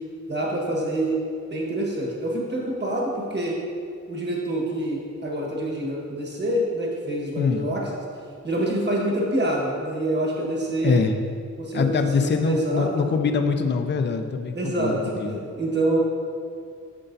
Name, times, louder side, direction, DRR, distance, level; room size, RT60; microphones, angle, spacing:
voice 1, 0.3-1.2 1.5-3.6 4.1-7.9 8.4-11.0 11.6-13.1 14.5-16.0, right 1 dB, 35° right, -2 dB, 1.4 m, -26 dB
voice 2, 11.7-15.4, left 5 dB, 35° left, 7 dB, 0.4 m, -23 dB
9.7 x 6.6 x 2.7 m, 2.4 s
wide cardioid pair, 150°, 31 cm